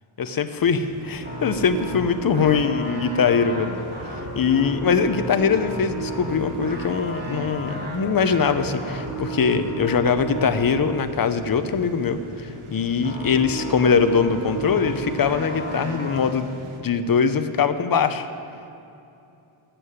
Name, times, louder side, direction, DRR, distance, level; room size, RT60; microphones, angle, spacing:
voice 1, 0.2-3.7 4.3-16.5 16.8-18.3, left 6 dB, 45° left, 10 dB, 0.7 m, -22 dB
sound 1, 0.6-16.8, right 2 dB, 80° right, 1.4 m, -41 dB
sound 2, 1.2-11.1 13.0-16.2, right 3 dB, 20° right, 2.8 m, -33 dB
10.0 x 7.5 x 9.4 m, 2.7 s
wide cardioid pair, 150°, 49 cm